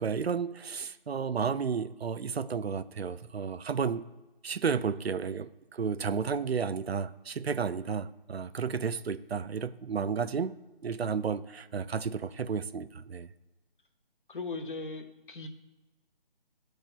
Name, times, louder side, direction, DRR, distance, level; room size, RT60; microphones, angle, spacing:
voice 1, 0.0-4.0 4.4-10.5 10.8-13.3, right 6 dB, 85° right, 14 dB, 0.5 m, -32 dB
voice 2, 14.3-15.5, left 3 dB, 55° left, 6 dB, 0.9 m, -38 dB
12.0 x 4.6 x 2.2 m, 1.1 s
figure-of-eight pair, 155°, 30 cm